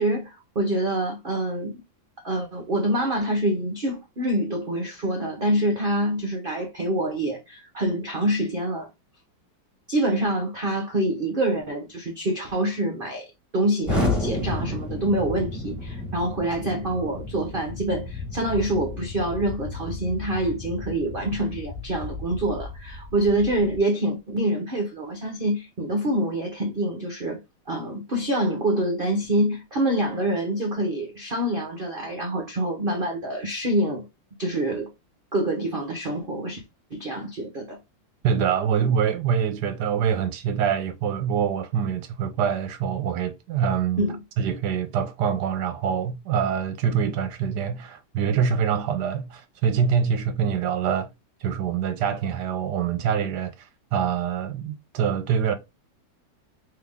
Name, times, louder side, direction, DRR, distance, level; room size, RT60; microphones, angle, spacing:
voice 1, 0.0-1.8 2.2-8.9 9.9-13.3 13.5-27.4 27.7-34.1 34.4-34.9 35.3-36.6 36.9-37.8 44.0-44.2, right 1 dB, 50° right, 0.6 m, -26 dB
Explosion, 13.8-23.8, left 2 dB, ahead, 1.1 m, -32 dB
voice 2, 38.2-44.0 44.4-51.1 51.4-55.5, right 7 dB, 75° right, 1.1 m, -25 dB
3.8 x 2.9 x 3.4 m
omnidirectional pair, 2.0 m